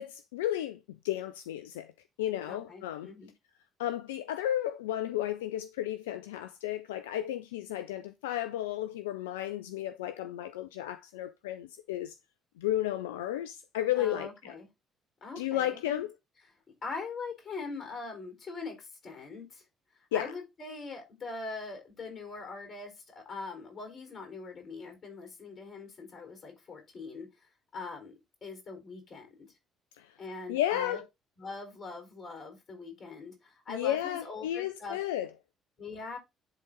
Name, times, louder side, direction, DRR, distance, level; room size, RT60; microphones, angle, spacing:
voice 1, 0.0-1.9 2.2-3.1 3.8-12.2 12.6-14.5 15.4-16.1 20.1-20.3 30.0-30.2 30.5-31.0 33.7-35.3, left 12 dB, 80° left, 0.3 m, -33 dB
voice 2, 2.4-3.3 13.9-14.7 15.2-16.0 16.8-19.6 20.1-27.3 27.7-28.1 28.4-29.5 30.2-31.0 31.4-35.0 35.8-36.2, left 4 dB, 50° left, 4.4 m, -42 dB
10.5 x 3.9 x 3.8 m
hypercardioid pair, 50°, 0 cm